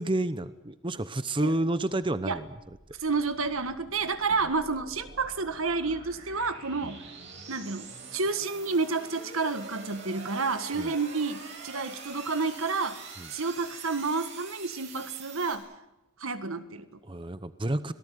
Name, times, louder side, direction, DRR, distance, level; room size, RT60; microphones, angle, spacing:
voice 1, 0.0-2.5 10.7-10.9 13.2-13.3 17.0-17.9, right 1 dB, 25° right, 12 dB, 0.8 m, -30 dB
sound 1, 2.6-15.5, right 4 dB, 55° right, 7.8 m, -45 dB
voice 2, 3.0-7.0 7.5-7.9 8.1-13.0 13.3-15.7 16.2-16.9, right 4 dB, 80° right, 10 dB, 1.7 m, -30 dB
26.5 x 18.0 x 9.4 m, 0.96 s
head